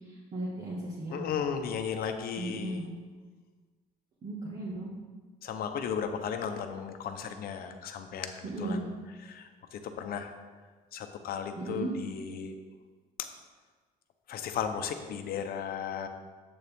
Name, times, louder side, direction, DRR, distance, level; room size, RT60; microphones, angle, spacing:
voice 1, 0.0-1.3 2.4-2.9 4.2-4.9 8.4-8.8 11.6-11.9, right 2 dB, 45° right, -6 dB, 1.7 m, -36 dB
voice 2, 1.1-2.9 5.4-8.9 9.2-10.3 10.9-12.6 14.3-16.1, left 7 dB, 60° left, 7 dB, 0.8 m, -35 dB
7.8 x 6.6 x 3.6 m, 1.4 s
cardioid pair, 110°, 17 cm